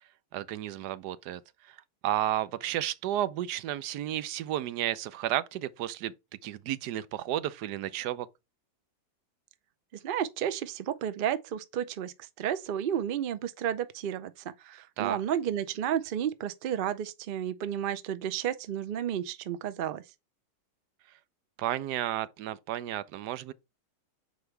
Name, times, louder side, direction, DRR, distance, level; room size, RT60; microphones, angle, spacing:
voice 1, 0.3-1.4 2.0-6.1 6.4-8.3 15.0-15.2 21.6-23.5, right 12 dB, 90° right, 1.2 m, -32 dB
voice 2, 9.9-14.3 14.6-20.0, right 9 dB, 65° right, 0.5 m, -32 dB
6.3 x 4.8 x 3.2 m
omnidirectional pair, 1.7 m